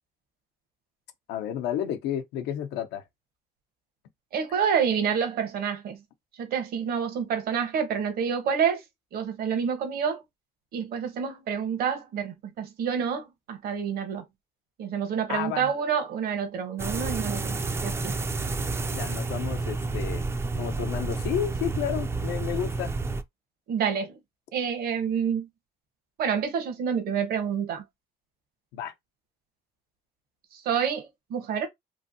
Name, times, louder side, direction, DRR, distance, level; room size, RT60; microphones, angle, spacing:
voice 1, 1.3-3.0 15.3-15.7 18.9-20.2 20.6-22.9 28.7-28.9, left 10 dB, 85° left, 0.7 m, -31 dB
voice 2, 4.3-6.0 6.4-8.8 9.1-10.2 10.7-14.2 14.8-17.6 17.8-18.2 23.7-24.2 24.5-25.5 26.2-27.8 30.5-31.7, right 7 dB, 65° right, 1.0 m, -28 dB
sound 1, 16.8-23.2, right 3 dB, 15° right, 0.3 m, -30 dB
3.1 x 2.6 x 2.6 m
cardioid pair, 110°, 17 cm